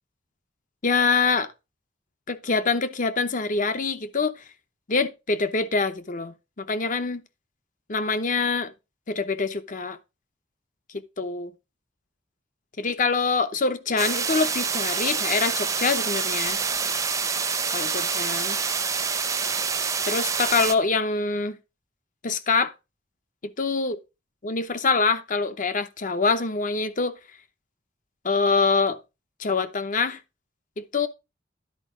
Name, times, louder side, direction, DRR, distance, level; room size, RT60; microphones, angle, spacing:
voice 1, 0.8-1.5 2.3-4.4 4.9-7.2 7.9-8.7 9.1-10.0 11.2-11.5 12.8-16.6 17.7-18.6 20.1-21.6 22.2-22.7 23.6-24.0 24.4-27.2 28.2-29.0 29.4-30.2 30.8-31.1, left 4 dB, 45° left, 0.8 m, -25 dB
sound 1, 14.0-20.7, right 5 dB, 15° right, 0.6 m, -26 dB
10.5 x 4.5 x 4.9 m
head